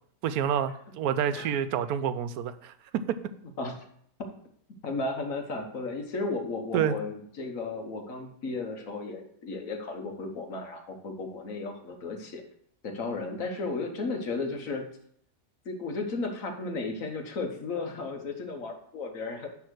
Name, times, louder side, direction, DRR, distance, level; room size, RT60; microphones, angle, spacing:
voice 1, 0.2-3.2 6.7-6.9, right 9 dB, 75° right, 13 dB, 1.0 m, -28 dB
voice 2, 4.8-12.4 12.8-14.9 15.6-19.5, left 3 dB, 60° left, 4 dB, 1.6 m, -34 dB
10.5 x 3.5 x 6.4 m, 0.65 s
omnidirectional pair, 1.7 m